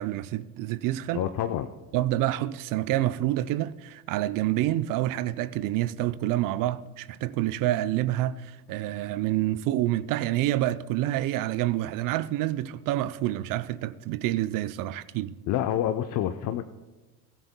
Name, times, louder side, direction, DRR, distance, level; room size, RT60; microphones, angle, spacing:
voice 1, 0.0-1.2 1.9-15.3, right 14 dB, 50° right, 0.6 m, -28 dB
voice 2, 1.1-1.7 15.5-16.6, left 11 dB, 45° left, 0.7 m, -27 dB
21.5 x 13.5 x 2.2 m
hypercardioid pair, 85°, 43 cm